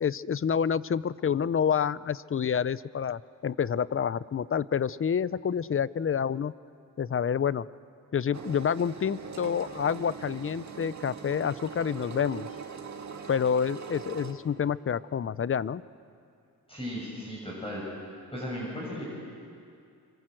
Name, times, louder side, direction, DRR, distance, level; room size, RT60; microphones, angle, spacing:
voice 1, 0.0-6.5 7.0-7.7 8.1-12.5 13.3-15.8, left 7 dB, 35° left, 18 dB, 0.6 m, -28 dB
Engine, 8.3-14.3, right 5 dB, 50° right, 2.1 m, -41 dB
voice 2, 16.7-17.8 18.3-19.0, equal, 15° left, -4 dB, 6.9 m, -36 dB
26.0 x 25.0 x 7.8 m, 2.4 s
cardioid pair, 95°, 36 cm